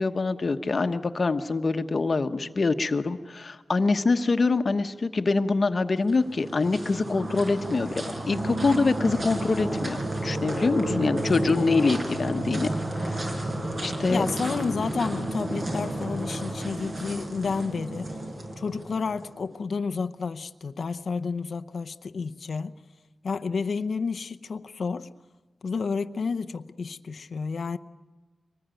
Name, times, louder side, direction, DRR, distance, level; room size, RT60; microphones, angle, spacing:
voice 1, 0.0-10.0 10.2-12.7 13.0-13.5 13.8-14.3, left 3 dB, 45° left, 1.1 m, -25 dB
sound 1, 6.0-19.3, right 1 dB, 45° right, 5.9 m, -32 dB
voice 2, 10.9-11.5 14.1-18.1 18.6-22.7 23.2-25.1 25.6-27.8, left 5 dB, 65° left, 0.7 m, -30 dB
24.5 x 20.0 x 9.1 m
wide cardioid pair, 80°, 0 cm